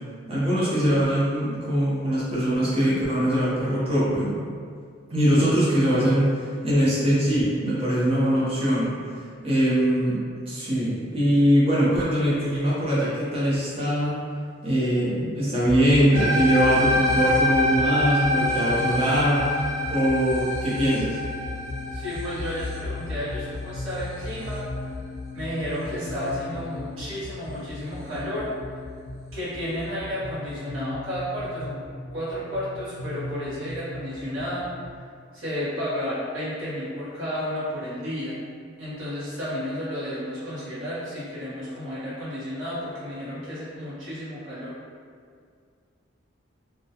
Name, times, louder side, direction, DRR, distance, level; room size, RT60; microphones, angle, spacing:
voice 1, 0.3-4.3 5.1-8.9 9.4-14.2 14.6-19.4 19.9-21.2, equal, 30° right, -8 dB, 0.6 m, -22 dB
sound 1, 15.6-34.9, left 2 dB, 90° left, 0.5 m, -36 dB
sound 2, 16.1-24.6, left 1 dB, 55° right, 0.9 m, -26 dB
voice 2, 21.9-24.6 25.3-28.5 29.3-31.8 32.1-34.7 35.3-38.4 38.8-44.7, equal, 80° right, -11 dB, 0.9 m, -32 dB
2.3 x 2.1 x 2.7 m, 2.1 s
head